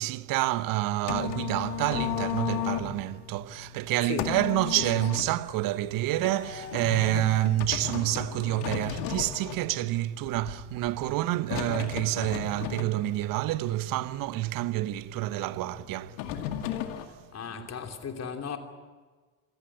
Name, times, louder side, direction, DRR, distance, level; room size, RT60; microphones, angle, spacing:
voice 1, 0.0-16.7 17.5-17.7, right 16 dB, 50° right, 1.0 m, -28 dB
sound 1, 0.6-17.0, left 10 dB, 60° left, 2.2 m, -36 dB
voice 2, 17.3-18.6, left 7 dB, 35° left, 3.2 m, -35 dB
27.0 x 16.5 x 10.0 m
figure-of-eight pair, 55°, 43 cm